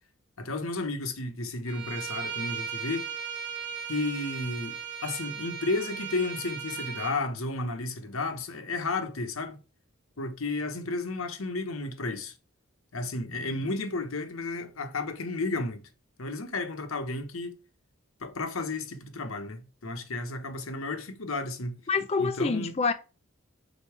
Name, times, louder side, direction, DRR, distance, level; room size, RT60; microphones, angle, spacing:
voice 1, 0.4-3.1 3.9-4.8 5.0-9.6 10.2-12.3 12.9-15.8 16.2-17.5 18.2-21.8 22.2-22.7, left 3 dB, 85° left, 1.1 m, -32 dB
Bowed string instrument, 1.7-7.2, right 7 dB, 60° right, 1.3 m, -37 dB
voice 2, 21.9-22.9, left 4 dB, 30° left, 0.4 m, -26 dB
5.2 x 4.1 x 4.8 m
head